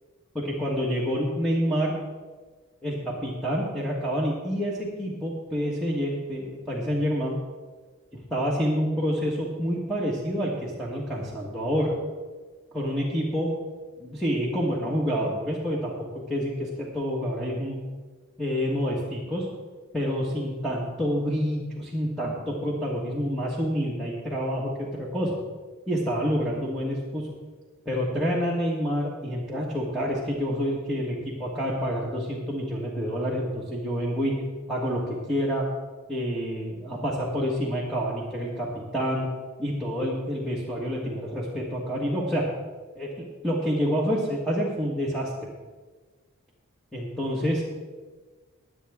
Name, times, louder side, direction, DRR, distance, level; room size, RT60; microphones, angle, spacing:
voice 1, 0.3-1.9 2.8-7.3 8.3-11.9 12.7-13.5 14.0-15.9 16.3-17.8 18.4-19.5 19.9-25.4 25.9-27.3 27.8-34.3 34.7-35.7 36.1-39.3 39.6-42.4 42.9-45.3 46.9-47.7, equal, ahead, -5 dB, 1.5 m, -28 dB
21.0 x 7.9 x 3.6 m, 1.3 s
head